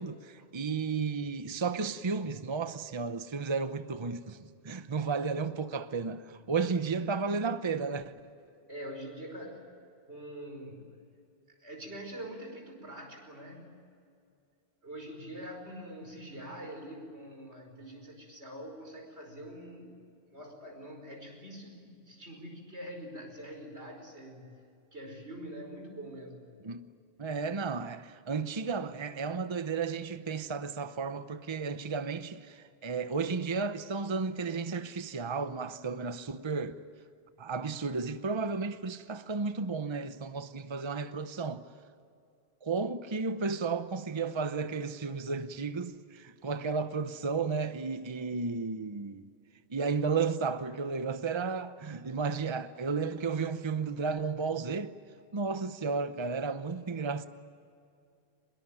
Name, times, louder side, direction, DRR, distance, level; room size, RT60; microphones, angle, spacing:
voice 1, 0.0-8.1 26.6-26.9 27.2-36.8 37.4-41.7 42.6-49.3 49.7-54.9 55.3-57.3, right 4 dB, 30° right, 0.8 m, -33 dB
voice 2, 8.7-9.6 10.0-11.0 11.6-13.7 14.8-20.0 20.3-24.5 24.9-26.5, equal, 90° right, 5.6 m, -44 dB
24.5 x 21.5 x 9.1 m
omnidirectional pair, 1.1 m